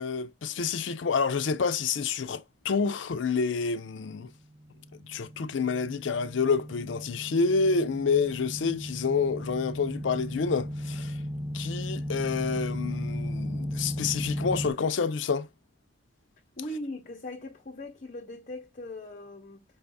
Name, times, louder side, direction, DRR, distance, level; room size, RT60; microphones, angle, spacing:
voice 1, 0.0-4.3 5.1-11.2 11.5-15.5, left 5 dB, 85° left, 0.5 m, -28 dB
sound 1, 5.0-14.7, equal, ahead, 0.5 m, -35 dB
voice 2, 16.6-19.6, left 1 dB, 45° left, 0.9 m, -39 dB
5.4 x 2.7 x 3.4 m
head